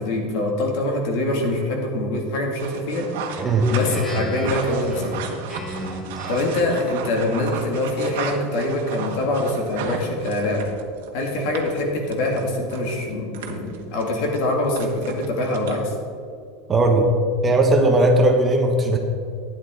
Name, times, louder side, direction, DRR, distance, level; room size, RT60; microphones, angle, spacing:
voice 1, 0.0-3.4 3.7-5.1 6.3-10.6 11.1-15.9, left 2 dB, 60° left, 0 dB, 2.5 m, -24 dB
sound 1, 2.6-16.1, right 6 dB, 75° right, 1.4 m, -35 dB
Speech synthesizer, 3.3-6.7, left 1 dB, 10° left, 1.1 m, -32 dB
voice 2, 16.7-17.1 17.4-19.0, right 2 dB, 20° right, 3 dB, 1.0 m, -17 dB
12.5 x 9.9 x 3.9 m, 2.4 s
supercardioid pair, 160°, 0 cm